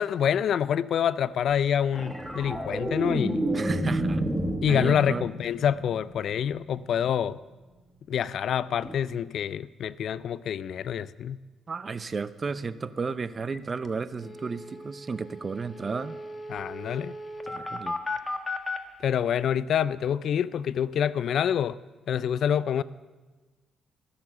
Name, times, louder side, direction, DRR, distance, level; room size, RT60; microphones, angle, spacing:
voice 1, 0.0-3.4 4.6-7.4 8.1-11.4 16.5-17.1 19.0-21.8 22.1-22.8, left 9 dB, 65° left, 18 dB, 0.3 m, -26 dB
sound 1, 1.9-6.4 8.8-9.0, right 1 dB, ahead, 1.3 m, -30 dB
voice 2, 3.5-4.2 4.7-5.2 11.7-16.1 17.5-18.0, right 4 dB, 35° right, 14 dB, 0.5 m, -33 dB
sound 2, 13.5-13.6 13.9-14.0 14.2-18.8, left 2 dB, 25° left, 1.3 m, -36 dB
15.5 x 6.8 x 6.9 m, 1.3 s
cardioid pair, 90°, 0 cm